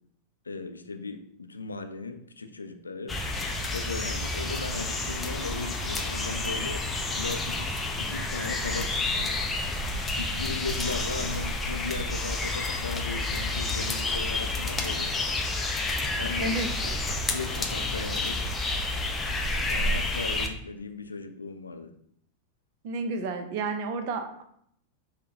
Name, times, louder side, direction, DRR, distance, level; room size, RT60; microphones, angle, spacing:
voice 1, 0.4-3.2 3.7-6.9 7.1-7.7 8.0-9.4 10.2-15.3 16.1-16.6 17.3-18.4 19.7-21.9, left 4 dB, 75° left, 7 dB, 0.4 m, -37 dB
sound 1, 3.1-20.5, left 2 dB, 15° left, 0.5 m, -30 dB
voice 2, 16.4-16.9 22.8-24.4, right 4 dB, 45° right, 6 dB, 0.5 m, -31 dB
5.4 x 2.1 x 2.8 m, 0.69 s
figure-of-eight pair, 90°, 0 cm